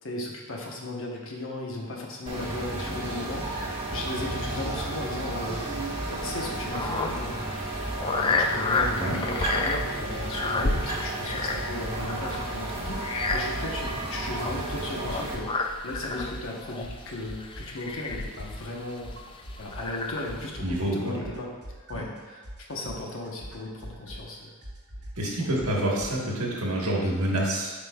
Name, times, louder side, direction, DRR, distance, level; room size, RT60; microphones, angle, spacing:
voice 1, 0.0-19.1 19.6-21.5 21.9-22.4 22.7-24.5 25.2-25.6, left 1 dB, 65° left, -1 dB, 1.1 m, -36 dB
sound 1, 2.3-15.4, right 2 dB, 25° right, 1.2 m, -33 dB
sound 2, 6.0-20.5, left 3 dB, 25° left, 0.3 m, -32 dB
sound 3, 8.8-9.1 9.3-11.3 11.5-13.5 13.7-15.6 15.9-20.0 20.2-26.2, equal, 55° right, 1.1 m, -42 dB
voice 2, 20.6-21.2 21.9-22.0 25.2-27.7, right 1 dB, 80° right, -3 dB, 1.4 m, -27 dB
8.1 x 5.2 x 2.4 m, 1.4 s
head